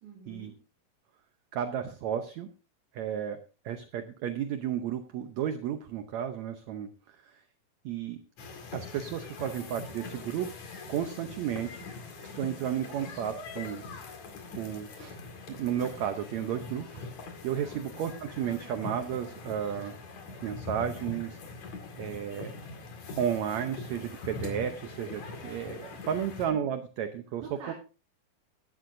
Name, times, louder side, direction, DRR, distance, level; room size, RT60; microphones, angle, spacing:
voice 1, 0.0-0.6 17.7-17.9 26.1-26.4 27.4-27.7, right 5 dB, 55° right, -1 dB, 3.3 m, -47 dB
voice 2, 1.5-2.5 2.9-3.4 3.6-7.4 7.8-8.2 8.7-10.5 10.9-11.8 12.3-13.8 14.5-15.2 15.5-17.1 17.4-19.9 20.4-21.4 22.0-22.5 23.2-27.4 27.7-27.8, right 9 dB, 75° right, 8 dB, 1.6 m, -33 dB
sound 1, 8.4-26.5, left 4 dB, 55° left, 3.2 m, -43 dB
15.5 x 11.5 x 2.6 m, 0.34 s
omnidirectional pair, 4.2 m